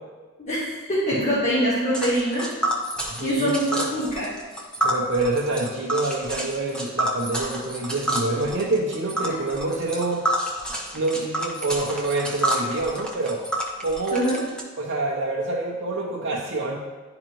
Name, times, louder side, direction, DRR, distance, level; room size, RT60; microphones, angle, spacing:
voice 1, 0.4-2.5 3.2-4.3 14.1-14.4, equal, 30° left, -9 dB, 1.4 m, -24 dB
Tick, 1.9-14.6, right 1 dB, 5° left, 0.8 m, -29 dB
voice 2, 3.1-3.9 4.8-10.3 10.9-13.4 13.8-14.3 14.8-16.8, right 2 dB, 55° right, -4 dB, 0.7 m, -26 dB
11.0 x 3.9 x 3.0 m, 1.3 s
head